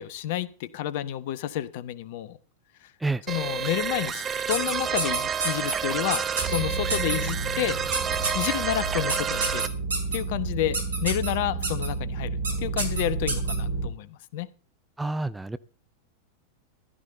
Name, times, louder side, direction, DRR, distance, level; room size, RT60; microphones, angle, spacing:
voice 1, 0.0-2.4 3.3-6.2 6.5-7.8 8.3-9.7 10.1-12.3 12.6-14.5, left 13 dB, 50° left, 16 dB, 1.0 m, -30 dB
sound 1, 3.3-9.7, right 7 dB, 20° right, 1.0 m, -29 dB
sound 2, 4.5-5.8 6.1-6.6 6.9-7.2 7.9-8.5 9.1-10.2 10.7-11.3 11.6-11.9 12.4-12.5 12.8-13.6, right 3 dB, 75° right, 4.0 m, -28 dB
sound 3, 6.4-13.9, right 3 dB, 45° right, 4.0 m, -31 dB
voice 2, 15.0-15.6, right 2 dB, 5° right, 13 dB, 0.5 m, -28 dB
15.0 x 13.0 x 3.9 m, 0.39 s
figure-of-eight pair, 90°, 0 cm